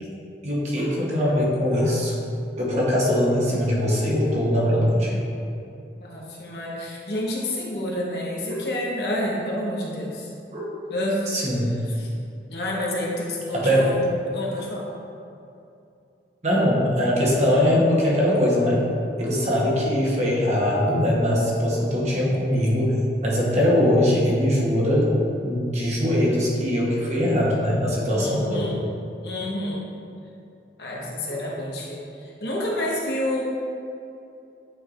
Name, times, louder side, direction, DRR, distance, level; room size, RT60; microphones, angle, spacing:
voice 1, 0.4-2.2 2.6-5.2 8.5-8.6 10.5-10.6 11.3-11.8 13.5-13.9 16.4-18.8 19.2-23.0 23.2-28.7, equal, 40° right, -4 dB, 1.1 m, -21 dB
voice 2, 6.0-10.3 10.9-11.3 11.9-12.1 12.5-14.0 14.2-14.9 28.1-28.8 29.2-29.8 30.8-33.4, left 1 dB, 70° left, -4 dB, 1.1 m, -29 dB
8.8 x 4.5 x 2.6 m, 2.6 s
head